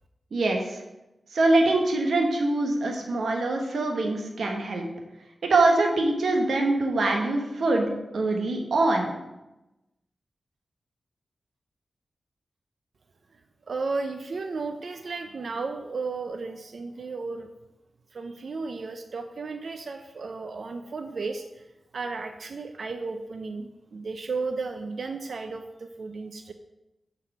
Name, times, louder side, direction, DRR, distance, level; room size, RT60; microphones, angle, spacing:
voice 1, 0.3-0.8 1.3-4.8 5.4-9.1, right 2 dB, 85° right, 2 dB, 1.2 m, -24 dB
voice 2, 13.7-17.5 18.1-21.7 21.9-26.5, right 4 dB, 70° right, 6 dB, 0.5 m, -34 dB
6.5 x 4.8 x 6.0 m, 0.97 s
wide cardioid pair, 80°, 0 cm